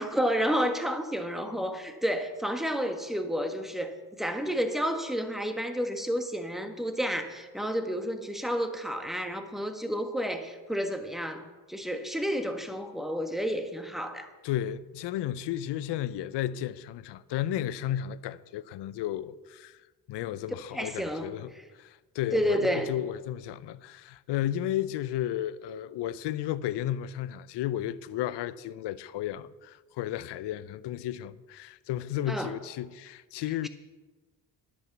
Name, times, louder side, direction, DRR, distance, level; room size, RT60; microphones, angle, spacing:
voice 1, 0.0-14.3 20.7-21.3 22.3-22.9 32.3-32.5 33.6-33.7, equal, ahead, 1.5 m, -30 dB
voice 2, 14.4-19.8 20.1-21.5 21.8-33.7, left 12 dB, 75° left, 0.6 m, -33 dB
10.5 x 8.5 x 7.2 m
supercardioid pair, 60°, 42 cm